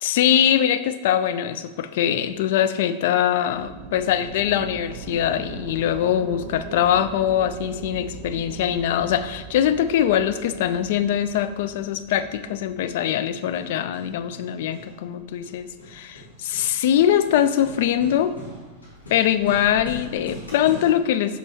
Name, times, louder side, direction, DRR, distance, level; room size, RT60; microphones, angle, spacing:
voice 1, 0.0-18.3 19.1-21.4, left 10 dB, 55° left, 11 dB, 0.3 m, -22 dB
sound 1, 3.4-13.4, right 6 dB, 45° right, 0.5 m, -40 dB
Hammer, 13.3-20.9, left 1 dB, 75° left, 1.3 m, -42 dB
6.1 x 5.3 x 3.0 m, 1.2 s
figure-of-eight pair, 90°, 0 cm